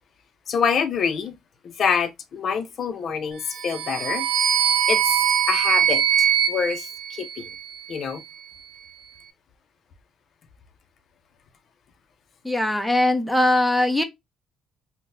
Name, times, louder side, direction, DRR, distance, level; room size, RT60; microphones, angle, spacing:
voice 1, 0.5-1.3 1.6-4.3 4.6-5.0 5.5-7.5 7.9-8.2, left 6 dB, 55° left, 0.4 m, -26 dB
sound 1, 3.5-7.8, right 9 dB, 75° right, 0.4 m, -22 dB
voice 2, 12.4-14.0, left 1 dB, ahead, 0.5 m, -20 dB
3.8 x 2.1 x 2.5 m
cardioid pair, 125°, 0 cm